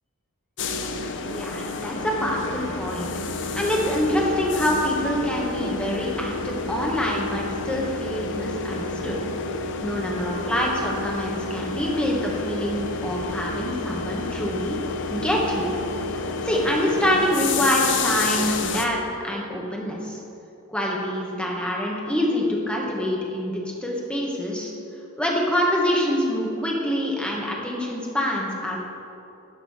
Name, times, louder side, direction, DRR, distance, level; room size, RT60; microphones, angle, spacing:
sound 1, 0.6-18.9, left 3 dB, 60° left, 0.7 m, -30 dB
voice 1, 1.3-9.2 9.8-14.8 15.1-15.8 16.4-19.0 19.2-20.2 20.7-24.7 25.2-28.8, equal, 5° left, -2 dB, 1.4 m, -26 dB
11.5 x 5.5 x 5.6 m, 2.8 s
head